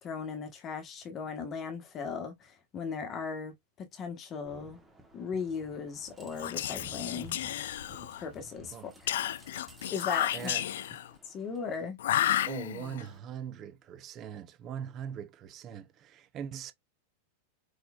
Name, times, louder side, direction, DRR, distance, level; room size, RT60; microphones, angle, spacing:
voice 1, 0.0-3.5 3.8-4.8 5.1-7.4 8.2-9.2 9.9-10.5 11.2-12.0, left 5 dB, 20° left, 1.3 m, -37 dB
sound 1, 4.5-11.9, right 1 dB, 5° right, 1.0 m, -54 dB
Whispering, 6.3-8.3 9.1-11.1 12.0-13.0, left 12 dB, 75° left, 0.4 m, -32 dB
voice 2, 10.3-10.7 12.4-16.7, right 8 dB, 25° right, 0.6 m, -41 dB
4.6 x 4.2 x 2.4 m
supercardioid pair, 165°, 0 cm